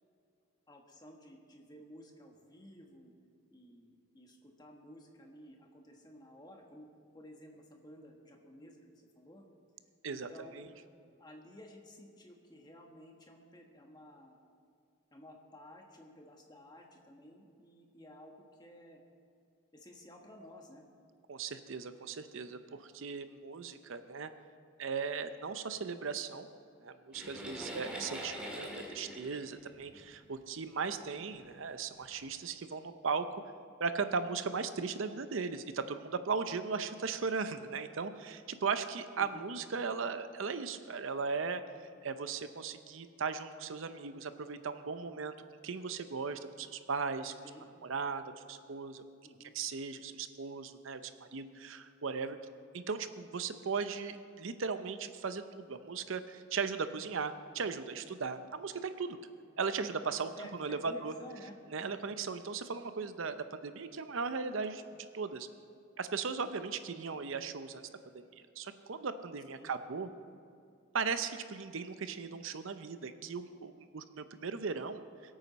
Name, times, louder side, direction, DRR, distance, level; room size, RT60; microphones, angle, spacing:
voice 1, 0.7-3.1 3.5-6.9 7.1-9.4 10.1-10.7 11.2-14.4 15.1-19.0 19.7-20.9 27.6-27.9 39.2-39.5 47.4-47.7 49.2-49.5 60.4-61.6 69.5-69.7, left 1 dB, 20° left, 1 dB, 1.4 m, -54 dB
voice 2, 10.0-10.7 21.3-24.3 24.8-26.5 26.8-33.4 33.8-41.6 42.0-45.3 45.6-47.3 47.8-49.0 49.5-52.4 52.7-59.2 59.6-61.1 61.7-64.8 65.1-65.5 66.0-67.9 68.1-70.1 70.9-75.0, right 5 dB, 70° right, 10 dB, 0.6 m, -37 dB
sound 1, 27.1-30.5 31.3-31.4 32.0-32.2, equal, 5° right, 1.8 m, -44 dB
22.0 x 8.9 x 4.1 m, 2.4 s
head